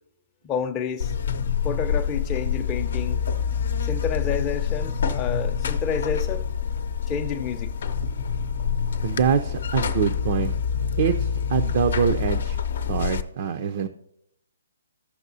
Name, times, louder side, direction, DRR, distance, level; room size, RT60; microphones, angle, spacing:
voice 1, 0.4-1.1 1.6-3.2 3.8-6.4 7.1-7.8, left 6 dB, 20° left, 0.6 m, -29 dB
Buzz, 1.0-13.2, left 7 dB, 60° left, 0.7 m, -26 dB
voice 2, 9.0-10.5 11.0-12.6 12.9-13.9, right 7 dB, 50° right, 0.5 m, -24 dB
14.5 x 5.9 x 2.7 m
hypercardioid pair, 140°, 0 cm